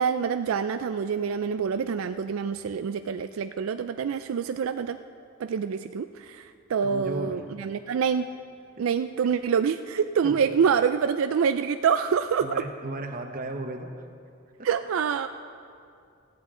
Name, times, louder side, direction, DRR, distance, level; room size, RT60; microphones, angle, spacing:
voice 1, 0.0-5.0 5.4-8.3 8.8-12.6 14.6-15.3, right 6 dB, 75° right, 9 dB, 0.4 m, -26 dB
voice 2, 6.8-7.4 8.8-8.9 10.2-10.4 12.4-14.1 14.6-14.7, right 2 dB, 40° right, 5 dB, 1.0 m, -35 dB
17.0 x 14.5 x 3.8 m, 2.4 s
head